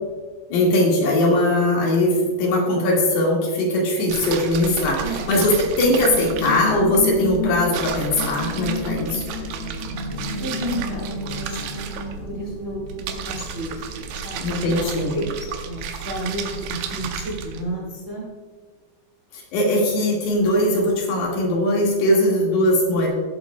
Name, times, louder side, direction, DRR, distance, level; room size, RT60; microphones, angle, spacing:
voice 1, 0.5-9.3 14.4-15.1 19.3-23.1, left 1 dB, 85° left, -3 dB, 4.1 m, -20 dB
sound 1, 4.1-17.6, right 7 dB, 80° right, 2.7 m, -33 dB
sound 2, 5.8-15.4 15.7-15.8, left 4 dB, 60° left, 1.3 m, -32 dB
voice 2, 10.4-11.8 12.2-14.9 15.1-18.2, right 1 dB, 30° right, -3 dB, 1.2 m, -32 dB
16.5 x 8.0 x 2.3 m, 1.5 s
omnidirectional pair, 4.6 m